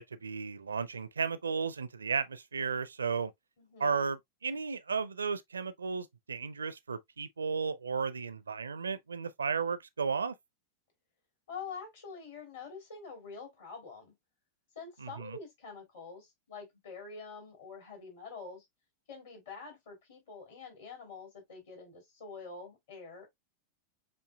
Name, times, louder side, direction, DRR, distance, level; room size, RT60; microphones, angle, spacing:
voice 1, 0.0-3.3 3.8-10.3 15.0-15.4, right 5 dB, 75° right, 0.5 m, -34 dB
voice 2, 3.6-4.0 11.5-14.1 14.7-18.6 19.1-23.3, left 5 dB, 60° left, 3.2 m, -46 dB
7.6 x 2.7 x 2.3 m
figure-of-eight pair, 90°, 0 cm